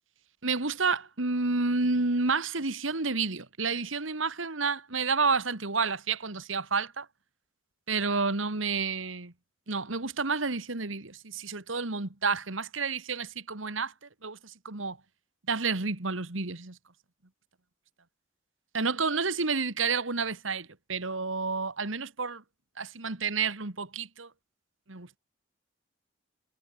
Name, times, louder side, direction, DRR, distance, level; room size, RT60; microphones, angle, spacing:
voice 1, 0.4-7.1 7.9-9.3 9.7-13.9 14.2-15.0 15.5-16.8 18.7-22.4 22.8-24.3 24.9-25.2, right 4 dB, 85° right, 2.1 m, -30 dB
head